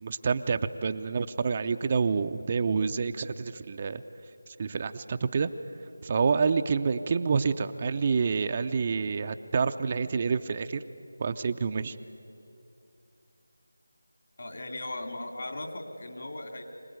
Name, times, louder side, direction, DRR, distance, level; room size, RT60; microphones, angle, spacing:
voice 1, 0.0-4.0 4.5-5.5 6.0-10.8 11.2-12.0, right 5 dB, 30° right, 9 dB, 0.5 m, -28 dB
voice 2, 14.4-16.6, left 1 dB, 55° left, 4 dB, 3.1 m, -38 dB
25.0 x 18.5 x 9.4 m, 2.7 s
figure-of-eight pair, 170°, 0 cm